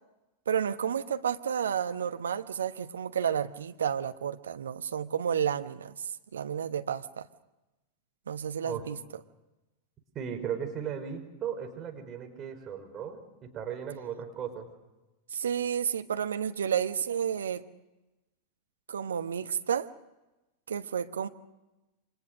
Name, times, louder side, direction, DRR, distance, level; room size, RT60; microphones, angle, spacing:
voice 1, 0.5-6.0 6.3-7.3 8.3-9.0 15.3-17.6 18.9-19.9 20.7-21.3, right 8 dB, 65° right, 9 dB, 1.1 m, -31 dB
voice 2, 10.1-13.2 13.5-14.7, right 8 dB, 30° right, 4 dB, 5.1 m, -36 dB
29.5 x 25.5 x 6.5 m, 1.0 s
figure-of-eight pair, 90°, 0 cm